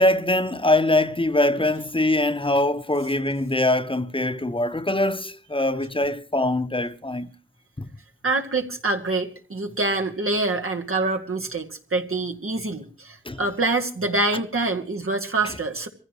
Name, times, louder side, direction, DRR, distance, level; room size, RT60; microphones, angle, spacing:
voice 1, 0.0-7.3 7.8-7.9 13.2-13.4 15.4-15.5, left 1 dB, 25° left, 0.8 m, -23 dB
voice 2, 8.2-15.9, right 2 dB, 85° right, 1.9 m, -25 dB
23.5 x 15.5 x 3.0 m
wide cardioid pair, 40°, 21 cm